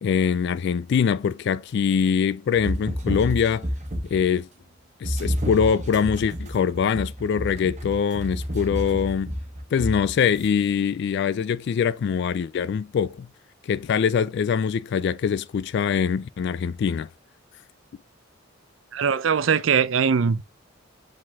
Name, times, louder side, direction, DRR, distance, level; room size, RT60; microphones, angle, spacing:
voice 1, 0.0-3.7 4.1-4.5 5.0-9.3 9.7-13.3 13.6-17.1, left 7 dB, 60° left, 0.3 m, -23 dB
sound 1, 2.5-4.3 5.0-10.5, equal, 40° right, 1.2 m, -30 dB
voice 2, 18.9-20.6, right 6 dB, 80° right, 0.5 m, -21 dB
5.8 x 5.0 x 3.4 m
head